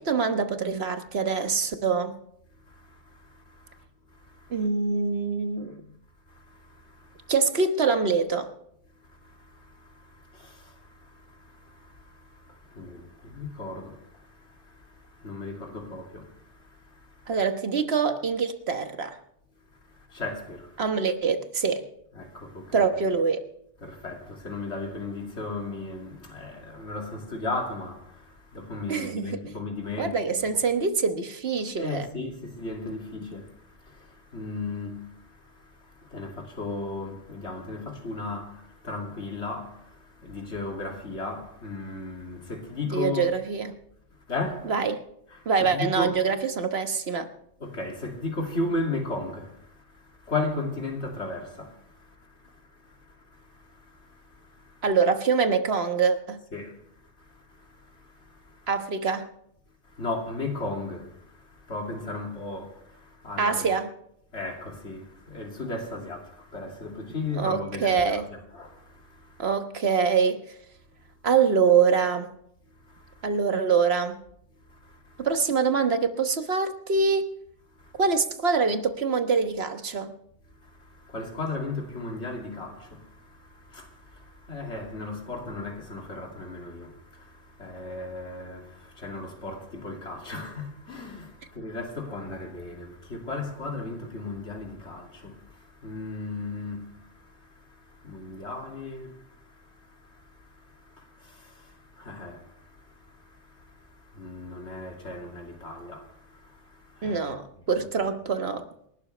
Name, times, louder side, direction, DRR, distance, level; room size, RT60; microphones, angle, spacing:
voice 1, 0.1-2.2 4.5-5.9 7.3-8.5 17.3-19.2 20.8-21.8 22.7-23.4 28.9-29.4 30.0-32.1 42.9-43.7 44.6-45.0 45.4-47.3 54.8-56.4 58.7-59.3 63.4-63.9 67.4-68.3 69.4-70.4 71.2-72.3 73.2-74.2 75.2-77.3 78.0-80.1 107.0-108.6, right 5 dB, 65° right, 1.5 m, -24 dB
voice 2, 2.7-3.8 4.1-4.6 6.3-7.3 9.1-17.3 19.9-20.8 22.1-22.9 23.8-30.6 31.8-43.3 44.3-44.7 45.3-46.2 47.6-54.8 56.5-58.7 59.9-63.7 64.3-68.2 68.5-69.4 72.8-73.3 74.7-75.3 77.8-77.9 80.6-107.2 108.0-108.1, left 2 dB, 75° left, 2.9 m, -36 dB
28.0 x 12.0 x 3.3 m
omnidirectional pair, 1.1 m